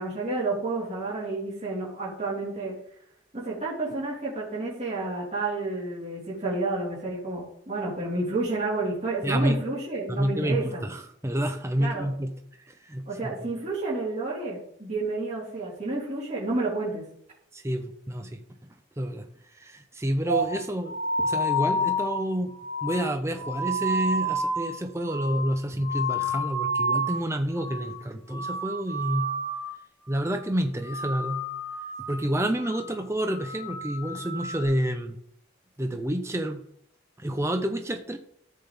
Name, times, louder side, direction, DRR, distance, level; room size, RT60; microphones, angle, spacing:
voice 1, 0.0-2.7 3.3-10.8 11.8-12.1 13.1-17.0, right 2 dB, 35° right, -8 dB, 3.9 m, -30 dB
voice 2, 9.2-9.6 10.1-12.4 12.7-13.5 17.5-18.4 19.0-19.2 19.6-22.5 22.8-29.3 30.1-31.4 32.1-35.2 35.8-36.6 37.2-38.2, right 1 dB, 15° right, 6 dB, 0.7 m, -29 dB
sound 1, 20.3-27.2 27.5-28.0 28.3-29.8 30.0-30.5 30.8-32.2 32.6-32.9 33.3-34.6, equal, 35° left, 4.5 m, -30 dB
14.0 x 7.5 x 3.5 m, 0.69 s
head